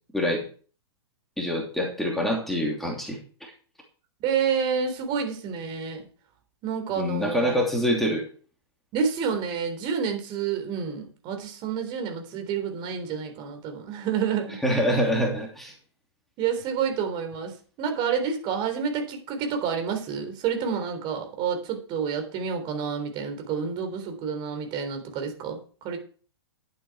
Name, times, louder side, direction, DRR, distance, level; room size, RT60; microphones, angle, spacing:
voice 1, 1.4-3.2 7.0-8.2 14.6-15.7, equal, ahead, -1 dB, 2.8 m, -25 dB
voice 2, 4.2-6.0 6.6-7.6 8.9-14.6 16.4-26.0, right 6 dB, 35° right, 5 dB, 3.6 m, -29 dB
12.0 x 8.8 x 4.8 m, 0.41 s
figure-of-eight pair, 115°, 14 cm